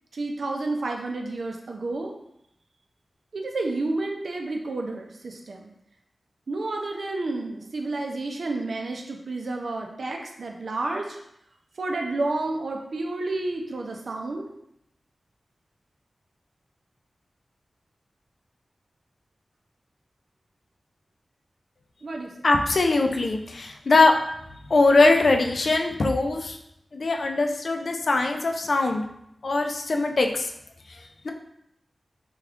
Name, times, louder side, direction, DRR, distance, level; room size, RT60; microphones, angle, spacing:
voice 1, 0.1-2.1 3.3-5.7 6.5-11.2 11.8-14.4 22.0-22.3, right 2 dB, 75° right, 2 dB, 0.5 m, -30 dB
voice 2, 22.4-24.1 24.7-26.6 26.9-29.0 29.4-30.5 31.2-31.3, left 3 dB, 65° left, 4 dB, 0.4 m, -21 dB
3.5 x 2.3 x 3.5 m, 0.77 s
wide cardioid pair, 85°, 0 cm